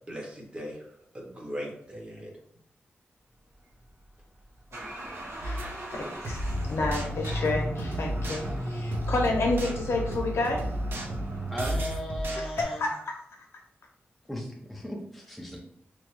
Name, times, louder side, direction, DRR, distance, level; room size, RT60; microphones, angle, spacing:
voice 1, 0.1-2.3 5.1-5.3, equal, 25° right, -1 dB, 0.8 m, -39 dB
sound 1, 3.7-11.6, equal, 90° right, 0.8 m, -36 dB
voice 2, 5.4-10.6 11.1-11.5 12.3-13.2, left 2 dB, 80° left, 1 dB, 0.7 m, -30 dB
sound 2, 5.4-5.7 6.2-12.6, equal, 55° right, 0.5 m, -33 dB
voice 3, 11.5-12.8 14.3-15.6, equal, ahead, -1 dB, 0.4 m, -36 dB
3.1 x 2.3 x 2.9 m, 0.70 s
wide cardioid pair, 180°, 4 cm